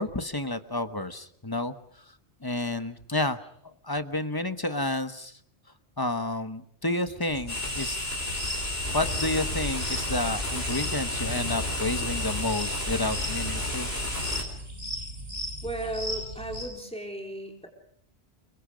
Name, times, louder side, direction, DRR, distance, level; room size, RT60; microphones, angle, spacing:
voice 1, 0.0-1.7 2.4-3.4 3.8-5.4 6.0-8.0 8.9-13.9, left 2 dB, 20° left, 9 dB, 1.1 m, -30 dB
sound 1, 7.3-16.6, equal, 70° right, 8.1 m, -38 dB
sound 2, 7.5-14.4, left 1 dB, 65° left, 4.9 m, -31 dB
voice 2, 15.6-17.7, right 1 dB, 5° left, 1 dB, 4.5 m, -35 dB
29.5 x 23.5 x 5.2 m, 0.65 s
omnidirectional pair, 1.1 m